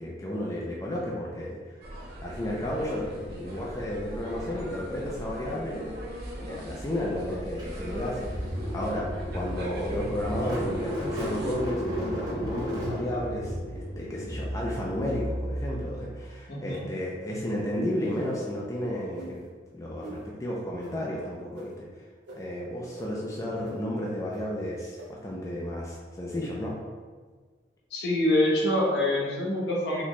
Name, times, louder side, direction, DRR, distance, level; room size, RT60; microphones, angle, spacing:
voice 1, 0.0-1.8 2.2-19.4 19.7-21.9 22.3-26.8, left 1 dB, 20° left, -4 dB, 0.3 m, -33 dB
sound 1, 1.8-11.5, right 1 dB, 55° right, 0.6 m, -40 dB
Car / Engine starting, 7.6-16.3, equal, 20° right, 0.8 m, -34 dB
voice 2, 16.5-16.9 27.9-30.0, left 1 dB, 70° left, -3 dB, 0.8 m, -25 dB
sound 2, 18.0-18.4 19.1-19.3 20.0-20.2 20.8-20.9 21.5-21.7 22.3-22.4 23.0-23.1 23.6-23.7 24.3-24.4 25.0-25.1, right 1 dB, 80° right, 0.9 m, -42 dB
4.1 x 2.2 x 3.0 m, 1.5 s
head